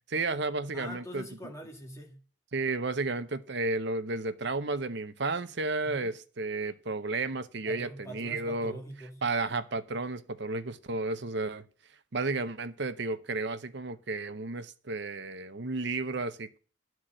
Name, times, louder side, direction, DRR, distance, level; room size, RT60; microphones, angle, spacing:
voice 1, 0.1-1.3 2.5-8.8 9.2-11.6 12.1-16.6, right 3 dB, 55° right, 0.8 m, -32 dB
voice 2, 0.7-2.1 5.8-6.1 7.6-9.2, equal, 15° left, 1.7 m, -43 dB
11.5 x 4.7 x 7.5 m
head